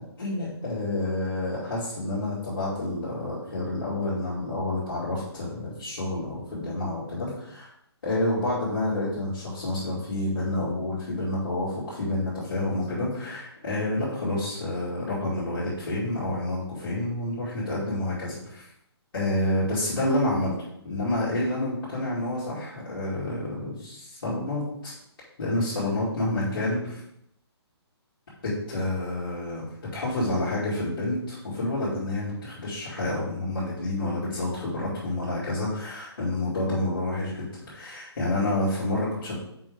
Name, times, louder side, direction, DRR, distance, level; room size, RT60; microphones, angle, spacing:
voice 1, 0.2-7.7 8.0-18.7 19.1-20.5 20.8-24.9 25.4-27.0 28.4-29.6 29.9-39.4, left 1 dB, 55° left, -10 dB, 2.5 m, -29 dB
5.8 x 5.0 x 3.7 m, 0.76 s
hypercardioid pair, 180°, 14 cm